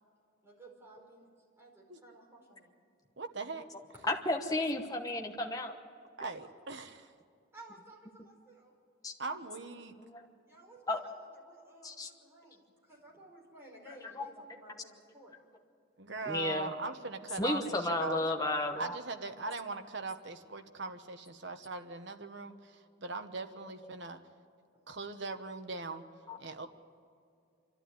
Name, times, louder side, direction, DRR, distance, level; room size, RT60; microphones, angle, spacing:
voice 1, 0.4-1.3 1.6-2.7 6.2-6.4 7.5-8.7 10.4-15.3 24.7-24.8, right 1 dB, 10° right, -3 dB, 4.9 m, -56 dB
voice 2, 3.2-3.7 6.2-7.1 9.2-10.0 16.0-18.2 18.8-24.2 24.9-26.1 26.4-26.7, right 3 dB, 60° right, 7 dB, 1.2 m, -40 dB
voice 3, 4.1-5.8 9.0-9.1 10.1-10.2 10.9-11.0 11.8-12.1 14.2-14.3 16.3-16.7 17.4-19.0 26.3-26.4, left 2 dB, 15° left, 2 dB, 1.0 m, -32 dB
27.0 x 12.0 x 9.5 m, 2.4 s
head